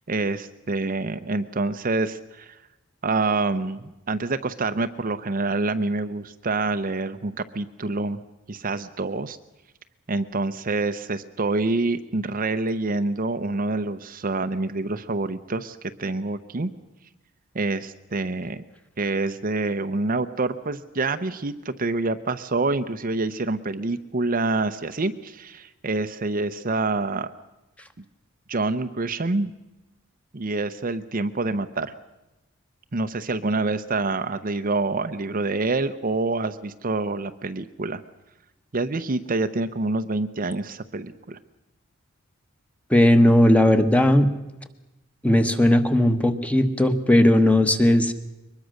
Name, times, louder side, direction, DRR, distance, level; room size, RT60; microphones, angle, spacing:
voice 1, 0.1-2.6 3.0-8.2 8.5-9.4 10.1-16.7 17.5-18.6 19.0-27.3 28.5-29.5 30.3-31.9 32.9-38.0 38.7-41.4, right 3 dB, 40° right, 9 dB, 0.7 m, -26 dB
voice 2, 42.9-44.3 45.2-48.1, left 1 dB, 5° left, 8 dB, 1.2 m, -17 dB
23.0 x 20.5 x 6.5 m, 1.0 s
head